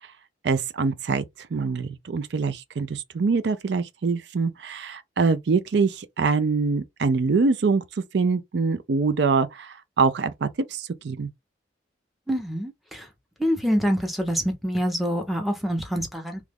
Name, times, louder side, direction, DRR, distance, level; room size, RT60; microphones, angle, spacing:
voice 1, 0.4-1.2 1.5-7.8 8.1-11.3, right 4 dB, 65° right, 0.4 m, -24 dB
voice 2, 12.3-13.1 13.4-16.4, equal, ahead, 0.8 m, -26 dB
3.0 x 2.4 x 3.5 m
head